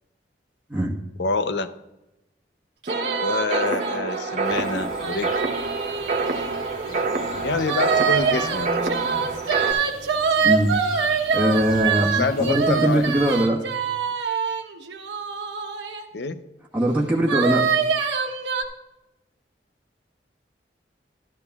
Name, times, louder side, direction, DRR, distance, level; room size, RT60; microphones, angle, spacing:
voice 1, 1.2-1.7 3.2-5.4 6.8-8.9 12.1-13.3 16.1-16.4, left 3 dB, 80° left, 10 dB, 0.6 m, -27 dB
sound 1, 2.8-7.0 7.7-16.0 17.3-18.6, right 6 dB, 85° right, 1.1 m, -25 dB
sound 2, 2.9-9.7, right 3 dB, 45° right, 0.8 m, -27 dB
sound 3, 4.4-13.4, left 2 dB, 50° left, 3.6 m, -38 dB
voice 2, 10.4-10.7 11.3-13.6 16.7-17.7, right 1 dB, 10° right, -3 dB, 1.3 m, -21 dB
12.5 x 12.0 x 2.4 m, 0.93 s
head